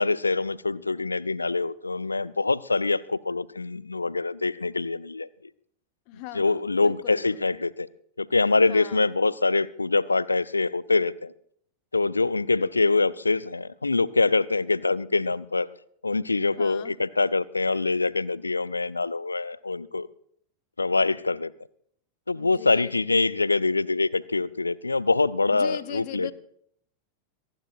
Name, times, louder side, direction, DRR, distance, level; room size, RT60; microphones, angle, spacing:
voice 1, 0.0-5.3 6.3-7.9 8.2-11.3 11.9-15.7 16.0-20.1 20.8-21.5 22.3-26.3, left 3 dB, 80° left, 21 dB, 0.5 m, -24 dB
voice 2, 6.1-7.5 8.7-9.0 16.6-16.9 22.3-23.0 25.5-26.3, left 14 dB, 45° left, 15 dB, 1.0 m, -40 dB
26.0 x 12.0 x 2.5 m, 0.67 s
figure-of-eight pair, 90°, 0 cm